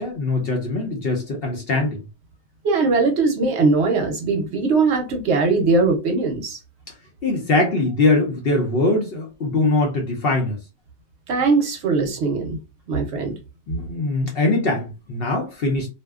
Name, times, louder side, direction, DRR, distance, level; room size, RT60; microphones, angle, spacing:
voice 1, 0.0-2.0 7.2-10.6 13.7-15.9, left 2 dB, 60° left, 0.7 m, -22 dB
voice 2, 2.6-6.6 11.3-12.6 12.9-13.3, right 3 dB, 65° right, 0.8 m, -20 dB
2.5 x 2.1 x 2.3 m
omnidirectional pair, 1.4 m